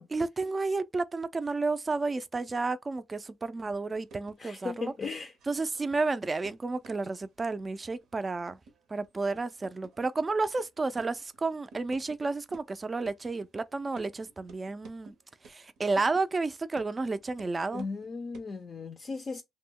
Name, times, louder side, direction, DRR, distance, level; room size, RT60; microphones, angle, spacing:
voice 1, 0.0-4.9 5.5-8.6 8.9-15.1 15.5-17.8, right 3 dB, 30° right, 0.3 m, -31 dB
sound 1, 3.9-12.2 12.5-18.1 18.3-18.6, right 4 dB, 75° right, 0.7 m, -54 dB
voice 2, 4.4-5.3 17.7-19.4, left 4 dB, 40° left, 0.4 m, -37 dB
2.1 x 2.1 x 3.6 m
cardioid pair, 90°, 0 cm